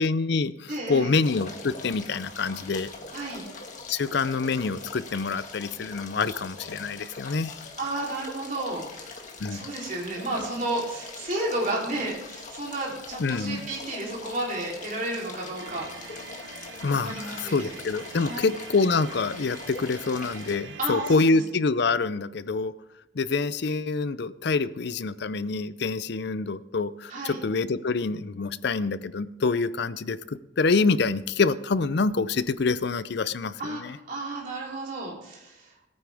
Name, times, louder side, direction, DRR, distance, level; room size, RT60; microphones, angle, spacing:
voice 1, 0.0-2.9 3.9-7.6 9.4-9.7 13.2-13.6 16.8-22.7 23.2-34.0, left 4 dB, 60° left, 16 dB, 0.5 m, -26 dB
voice 2, 0.7-1.1 3.1-3.4 7.8-9.1 9.5-16.2 17.0-17.6 18.1-18.5 20.8-21.4 27.1-27.4 33.6-35.7, right 2 dB, 45° right, -3 dB, 3.4 m, -32 dB
sound 1, 1.2-20.6, left 4 dB, 40° left, 1.7 m, -42 dB
sound 2, 15.6-21.2, right 5 dB, 85° right, 1.2 m, -44 dB
17.5 x 9.6 x 3.5 m, 0.98 s
head